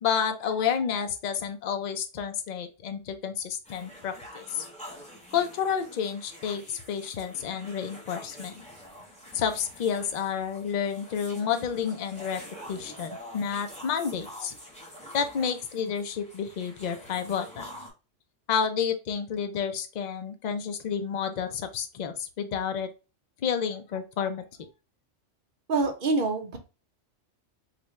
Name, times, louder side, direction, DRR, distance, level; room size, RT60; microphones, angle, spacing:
voice 1, 0.0-4.7 5.3-8.6 9.3-12.4 12.7-14.5 15.1-17.7 18.5-22.9 23.4-24.7, left 7 dB, 50° left, 7 dB, 0.5 m, -30 dB
sound 1, 3.6-17.9, equal, 5° left, 1.0 m, -46 dB
voice 2, 25.7-26.6, right 3 dB, 50° right, 5 dB, 0.8 m, -26 dB
4.1 x 2.3 x 3.0 m, 0.31 s
omnidirectional pair, 1.2 m